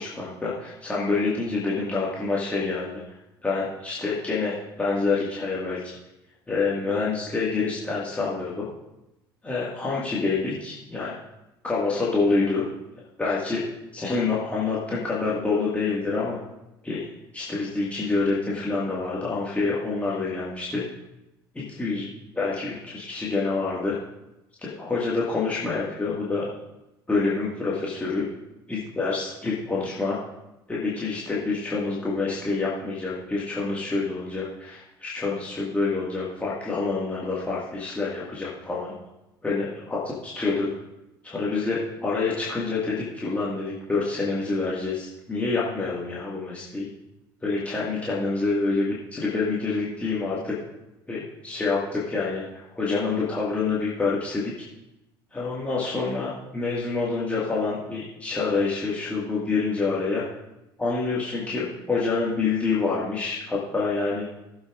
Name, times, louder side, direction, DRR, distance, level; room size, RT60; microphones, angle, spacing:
voice 1, 0.0-3.0 3.4-6.0 6.5-8.7 9.4-11.1 11.6-12.7 13.2-13.7 13.9-16.4 16.8-17.1 17.3-20.8 21.6-22.1 22.3-24.0 24.6-26.5 27.1-28.2 28.7-30.2 30.7-38.9 39.4-40.7 41.2-46.9 47.4-50.5 51.1-54.5 55.3-60.2 60.8-64.3, left 3 dB, 10° left, -6 dB, 2.0 m, -27 dB
18.5 x 7.3 x 2.6 m, 0.94 s
figure-of-eight pair, 65°, 12 cm